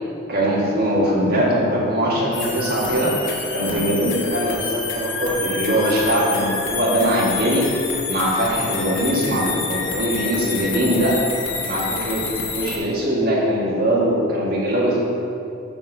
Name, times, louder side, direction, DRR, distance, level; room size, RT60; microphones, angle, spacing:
voice 1, 0.3-7.7 8.1-11.2 11.6-15.0, equal, 45° right, -5 dB, 1.5 m, -21 dB
sound 1, 2.3-12.8, left 4 dB, 60° left, 0.9 m, -28 dB
6.8 x 4.1 x 6.6 m, 2.6 s
head